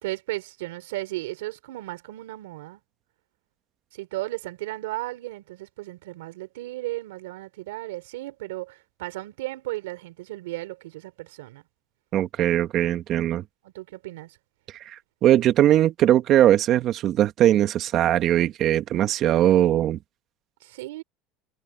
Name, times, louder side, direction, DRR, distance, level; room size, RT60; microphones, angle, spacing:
voice 1, 0.0-2.8 3.9-11.6 13.6-14.4 20.6-21.0, right 18 dB, 90° right, 3.3 m, -35 dB
voice 2, 12.1-13.4 14.9-15.0 15.2-20.0, right 12 dB, 50° right, 1.8 m, -20 dB
supercardioid pair, 110°, 0 cm